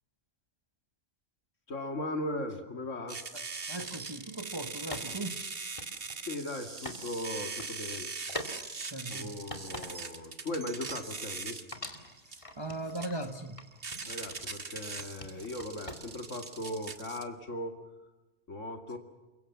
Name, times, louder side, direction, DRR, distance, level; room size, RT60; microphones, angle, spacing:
voice 1, 1.7-3.2 6.2-8.1 9.1-11.7 14.1-17.7 18.5-19.0, left 1 dB, 75° left, 5 dB, 2.5 m, -38 dB
sound 1, 3.1-17.2, right 4 dB, 50° right, 1.8 m, -41 dB
voice 2, 3.3-5.4 8.9-9.3 12.2-13.7, right 2 dB, 20° right, 6 dB, 1.4 m, -39 dB
sound 2, 3.8-3.9 4.9-7.0 7.4-7.7 8.3-8.6 9.0-10.2 10.5-11.4 11.7-13.2 13.6-14.6 15.0-16.3, left 1 dB, 25° left, 2.5 m, -45 dB
29.0 x 23.5 x 7.3 m, 1.1 s
omnidirectional pair, 1.3 m